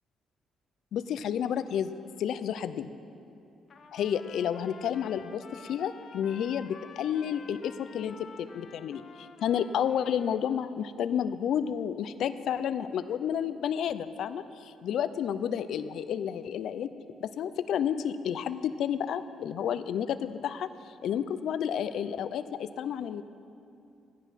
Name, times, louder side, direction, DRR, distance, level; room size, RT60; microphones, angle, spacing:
voice 1, 0.9-1.9 2.2-2.9 3.9-16.9 17.2-20.7 21.0-23.2, left 9 dB, 75° left, 12 dB, 0.5 m, -31 dB
Trumpet, 3.7-10.4, left 5 dB, 50° left, 1.0 m, -51 dB
14.5 x 10.5 x 5.8 m, 2.6 s
cardioid pair, 90°, 0 cm